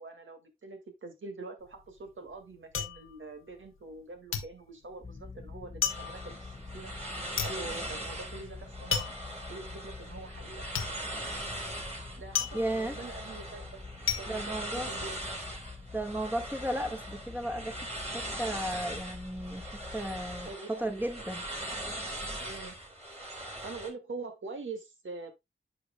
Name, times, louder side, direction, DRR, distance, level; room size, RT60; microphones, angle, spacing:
voice 1, 0.0-6.9 7.4-9.1 9.5-10.7 12.2-13.8 14.2-15.2 20.5-21.0 22.4-22.8 23.6-25.3, right 3 dB, 70° right, 1.9 m, -44 dB
sound 1, 1.6-4.0 4.3-15.4 15.8-16.4, left 7 dB, 85° left, 1.0 m, -36 dB
sound 2, 5.0-20.6, left 4 dB, 20° left, 0.6 m, -47 dB
sound 3, 5.9-23.9, right 1 dB, 30° right, 3.1 m, -41 dB
voice 2, 12.5-13.0 14.3-14.9 15.9-17.9 18.1-21.4, right 1 dB, 10° right, 1.5 m, -34 dB
9.4 x 6.1 x 2.2 m
cardioid pair, 45°, 21 cm